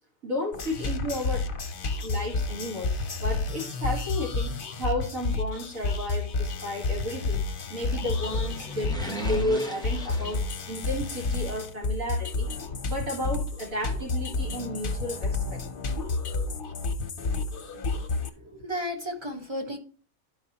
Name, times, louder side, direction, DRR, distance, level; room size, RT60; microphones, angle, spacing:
voice 1, 0.2-1.5 2.0-12.5 12.9-15.6 16.0-16.1, left 1 dB, 75° right, -1 dB, 2.0 m, -33 dB
sound 1, 0.5-18.3, left 3 dB, 45° left, 0.9 m, -30 dB
sound 2, 7.7-11.0 11.3-11.4, left 1 dB, 5° left, 0.6 m, -39 dB
voice 2, 18.2-19.8, equal, 20° right, 2 dB, 1.2 m, -34 dB
12.0 x 4.8 x 2.8 m, 0.38 s
omnidirectional pair, 1.4 m